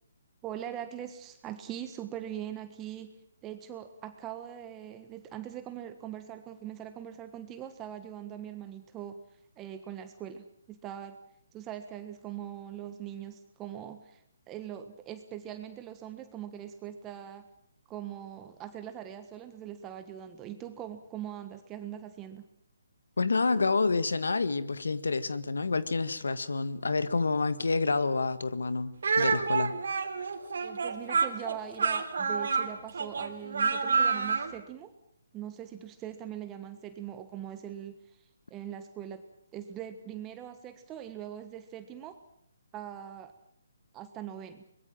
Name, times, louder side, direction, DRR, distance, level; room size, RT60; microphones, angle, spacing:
voice 1, 0.4-3.1 3.4-9.2 9.6-11.2 11.5-14.2 14.5-17.5 17.9-22.5 30.6-34.9 35.3-38.0 38.5-39.2 39.5-42.2 42.7-43.3 43.9-44.6, right 10 dB, 15° right, 1.4 m, -41 dB
voice 2, 23.2-29.7, left 3 dB, 85° left, 1.7 m, -28 dB
Speech, 29.0-34.5, right 5 dB, 70° right, 3.5 m, -28 dB
24.0 x 21.0 x 7.6 m
hypercardioid pair, 155°, 0 cm